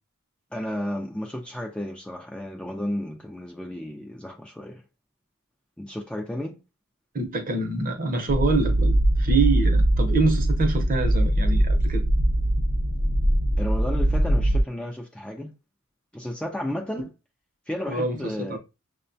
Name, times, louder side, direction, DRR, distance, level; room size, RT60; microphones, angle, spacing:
voice 1, 0.5-4.8 5.8-6.6 13.6-15.5 16.1-17.1 17.7-18.6, left 1 dB, 5° left, 0.4 m, -33 dB
voice 2, 7.1-12.0 17.9-18.6, right 3 dB, 40° right, 0.7 m, -26 dB
sound 1, 8.3-14.6, right 1 dB, 75° right, 0.8 m, -21 dB
6.2 x 2.2 x 2.6 m
head